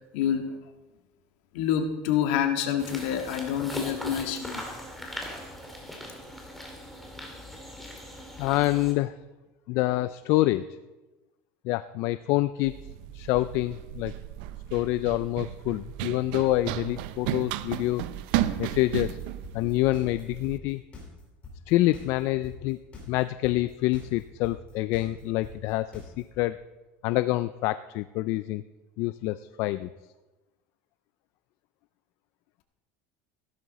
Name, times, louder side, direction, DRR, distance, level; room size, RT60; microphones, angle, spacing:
voice 1, 0.1-0.6 1.5-4.6, left 9 dB, 70° left, 5 dB, 1.8 m, -27 dB
sound 1, 2.8-8.9, left 1 dB, ahead, 2.3 m, -40 dB
voice 2, 8.4-9.1 9.7-10.7 11.6-12.7 13.1-14.1 14.7-18.0 18.6-19.2 19.5-20.8 21.7-22.8 23.1-26.6 27.0-28.6 29.0-29.9, left 17 dB, 55° left, 14 dB, 0.4 m, -26 dB
Run, 12.6-20.6, right 13 dB, 70° right, 0.7 m, -34 dB
sound 2, 18.4-26.4, left 3 dB, 25° left, 4.5 m, -45 dB
15.0 x 12.5 x 4.1 m, 1.1 s
cardioid pair, 155°, 5 cm